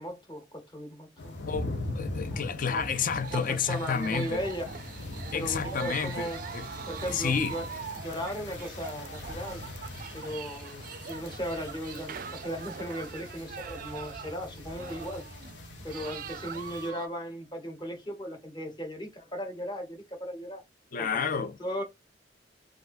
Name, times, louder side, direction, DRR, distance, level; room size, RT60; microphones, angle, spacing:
voice 1, 0.0-1.3 2.3-2.4 2.7-2.9 3.3-4.7 5.3-6.4 6.9-7.7 8.0-9.6 10.1-15.2 15.8-20.6 21.0-21.8, equal, 25° left, 1.0 m, -37 dB
sound 1, 1.2-16.9, left 2 dB, 90° left, 0.9 m, -41 dB
voice 2, 1.5-4.4 5.3-6.7 7.1-7.6 20.9-21.6, left 6 dB, 50° left, 0.5 m, -30 dB
sound 2, 2.7-17.1, right 7 dB, 50° right, 0.4 m, -43 dB
3.4 x 2.4 x 2.5 m
head